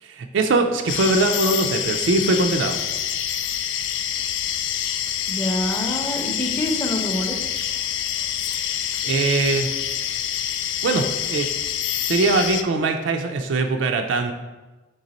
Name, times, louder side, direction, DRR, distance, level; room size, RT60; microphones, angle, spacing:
voice 1, 0.0-2.8 8.5-9.7 10.0-10.3 10.8-11.5 12.0-14.3, right 3 dB, 80° right, 5 dB, 0.4 m, -22 dB
sound 1, 0.9-12.6, left 9 dB, 80° left, 0.3 m, -26 dB
voice 2, 5.3-7.4, left 1 dB, 15° left, 1 dB, 0.6 m, -26 dB
4.0 x 3.3 x 4.1 m, 1.2 s
head